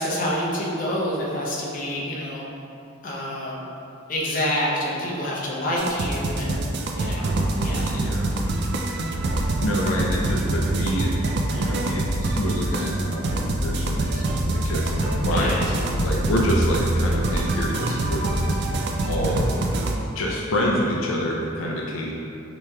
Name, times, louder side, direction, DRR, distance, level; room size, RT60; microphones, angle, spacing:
voice 1, 0.0-2.4 3.0-3.6 4.1-6.5 7.0-7.9 15.3-15.7, equal, 45° left, -5 dB, 0.6 m, -27 dB
sound 1, 5.8-20.0, right 1 dB, 55° right, 0.3 m, -25 dB
voice 2, 7.8-8.3 9.6-14.3 14.5-18.4 19.1-19.5 20.2-22.1, equal, 90° left, -2 dB, 0.5 m, -27 dB
4.7 x 2.9 x 2.2 m, 2.7 s
head